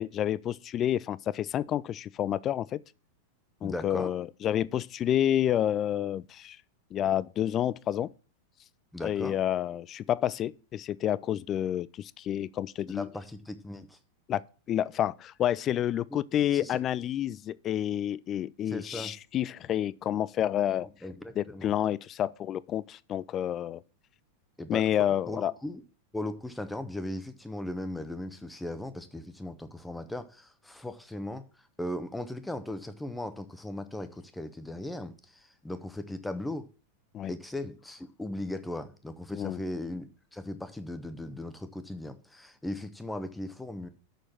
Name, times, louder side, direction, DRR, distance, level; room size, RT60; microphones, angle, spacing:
voice 1, 0.0-2.8 3.6-6.6 6.9-8.1 9.0-13.1 14.3-14.4 14.7-20.9 21.4-23.8 24.7-25.5 37.1-37.3 39.3-39.6, left 11 dB, 30° left, 0.3 m, -29 dB
voice 2, 3.6-4.1 8.9-9.4 12.9-14.0 16.5-16.8 18.7-19.1 21.0-21.7 24.6-24.9 25.3-25.8 26.1-31.4 31.8-36.7 37.3-43.9, left 1 dB, 5° left, 0.9 m, -38 dB
6.5 x 6.3 x 7.2 m
figure-of-eight pair, 90°, 0 cm